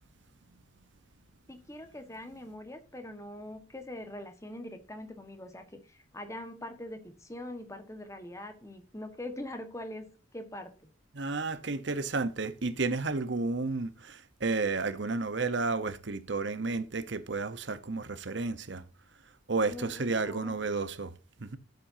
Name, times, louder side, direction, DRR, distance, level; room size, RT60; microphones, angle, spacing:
voice 1, 1.5-10.9 19.6-20.6, left 1 dB, 15° left, 1.4 m, -43 dB
voice 2, 11.1-18.8 19.5-21.1 21.4-21.6, right 3 dB, 60° right, 1.0 m, -32 dB
12.0 x 7.9 x 2.7 m
head